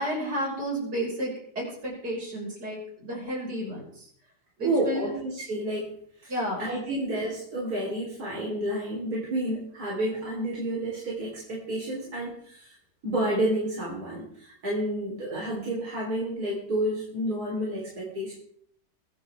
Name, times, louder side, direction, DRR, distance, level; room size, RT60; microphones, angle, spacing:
voice 1, 0.0-3.8 4.6-5.1 6.3-6.6, equal, 80° right, -3 dB, 6.3 m, -32 dB
voice 2, 4.6-5.9 6.2-6.3 6.6-12.8 13.0-18.3, right 1 dB, 65° right, -5 dB, 4.3 m, -30 dB
23.0 x 9.7 x 3.6 m, 0.64 s
omnidirectional pair, 1.8 m